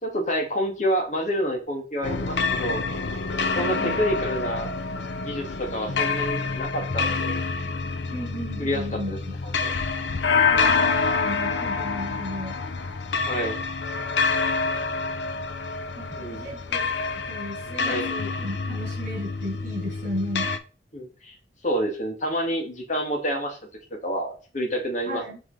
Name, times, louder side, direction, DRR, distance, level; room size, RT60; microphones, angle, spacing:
voice 1, 0.0-2.8 3.3-4.7 5.2-7.4 8.6-9.2 9.6-9.7 13.3-13.6 16.2-16.5 17.8-18.1 20.9-21.3 21.6-23.6 23.9-25.2, equal, 45° left, 1 dB, 2.5 m, -28 dB
sound 1, 2.0-20.6, left 4 dB, 85° left, 0.8 m, -27 dB
voice 2, 3.5-4.0 8.1-9.4 10.5-12.6 15.9-20.5 25.1-25.4, equal, 50° right, 1 dB, 4.8 m, -35 dB
7.9 x 4.8 x 5.1 m, 0.36 s
head